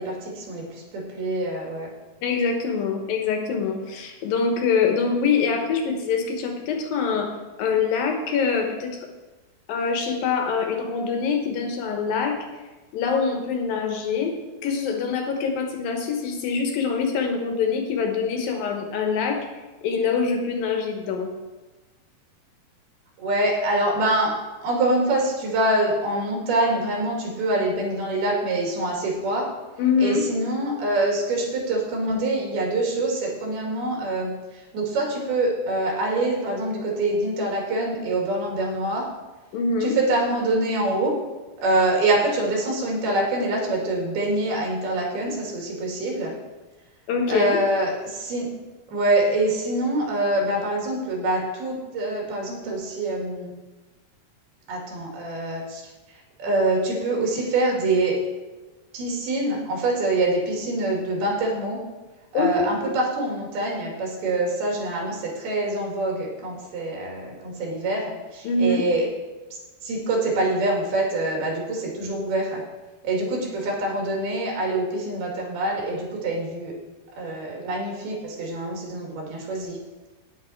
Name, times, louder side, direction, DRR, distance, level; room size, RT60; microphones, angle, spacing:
voice 1, 0.0-1.9 23.2-24.3 24.6-29.5 30.0-34.4 34.7-39.0 39.8-41.1 41.6-46.3 47.3-48.5 48.9-53.5 54.7-55.8 56.4-58.2 58.9-61.8 62.3-69.1 69.8-72.6 73.0-76.7 77.2-79.8, right 2 dB, 85° right, -1 dB, 4.6 m, -25 dB
voice 2, 2.2-7.3 7.6-8.9 9.7-12.4 12.9-14.3 14.6-19.4 19.8-21.3 29.8-30.2 39.5-39.9 47.1-47.6 62.3-62.7 68.4-68.9, left 5 dB, 70° left, 3 dB, 2.9 m, -24 dB
9.6 x 9.5 x 4.5 m, 1.2 s
omnidirectional pair, 4.3 m